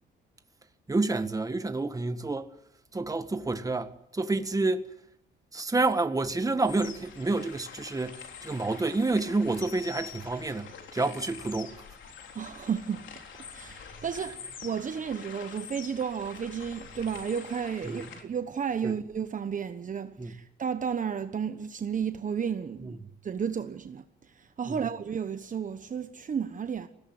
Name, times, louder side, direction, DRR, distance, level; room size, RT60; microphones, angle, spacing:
voice 1, 0.9-2.5 2.9-4.9 5.5-11.8 17.8-18.1 18.8-19.0 20.2-20.4 22.8-23.0 24.7-24.8, right 3 dB, 15° right, 1.7 m, -29 dB
sound 1, 6.7-18.2, left 7 dB, 70° left, 3.8 m, -46 dB
voice 2, 12.3-13.1 13.5-23.0 23.2-24.0 24.4-26.9, right 7 dB, 40° right, 1.2 m, -33 dB
21.5 x 17.5 x 9.6 m
cardioid pair, 90°, 20 cm